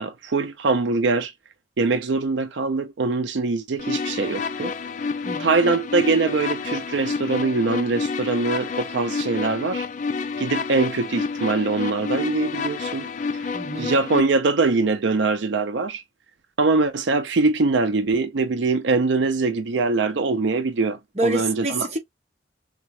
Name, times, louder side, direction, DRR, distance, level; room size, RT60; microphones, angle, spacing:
voice 1, 0.0-1.3 1.8-4.7 5.4-9.8 10.4-13.1 13.4-16.0 16.6-21.9, right 3 dB, 80° right, 0.5 m, -23 dB
sound 1, 3.8-14.2, left 5 dB, 40° left, 0.3 m, -29 dB
voice 2, 5.2-5.6 13.5-14.0 21.1-22.0, right 2 dB, 35° right, 1.1 m, -27 dB
3.7 x 3.5 x 3.1 m
head